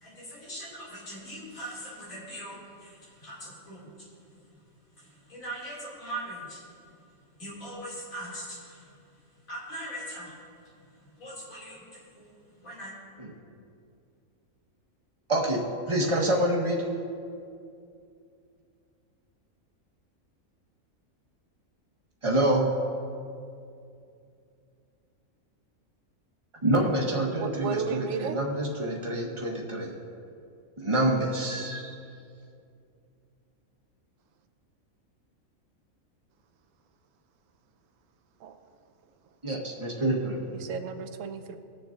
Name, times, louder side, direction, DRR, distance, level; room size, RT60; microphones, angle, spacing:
voice 1, 0.0-2.9 3.2-3.9 5.3-6.6 7.4-8.8 9.5-10.3 11.2-12.2 12.6-12.9, right 1 dB, 75° left, 3.0 m, -40 dB
voice 2, 15.3-15.6 15.9-16.8 22.2-22.7 26.6-29.9 30.8-31.9 39.4-40.4, right 1 dB, 25° right, 1.2 m, -26 dB
voice 3, 27.3-28.4 38.4-38.6 40.5-41.6, right 6 dB, 75° right, 1.0 m, -34 dB
20.5 x 6.8 x 2.5 m
omnidirectional pair, 1.4 m